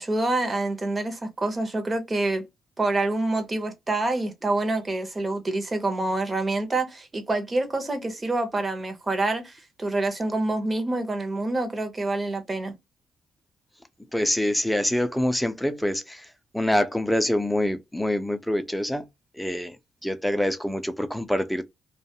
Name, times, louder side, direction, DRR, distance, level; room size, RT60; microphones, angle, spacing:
voice 1, 0.0-2.4 2.8-12.7, right 2 dB, 25° right, 0.8 m, -27 dB
voice 2, 14.1-16.3 16.5-19.1 19.4-19.8 20.0-21.6, left 1 dB, 5° left, 0.5 m, -25 dB
2.4 x 2.3 x 2.7 m
cardioid pair, 90°, 0 cm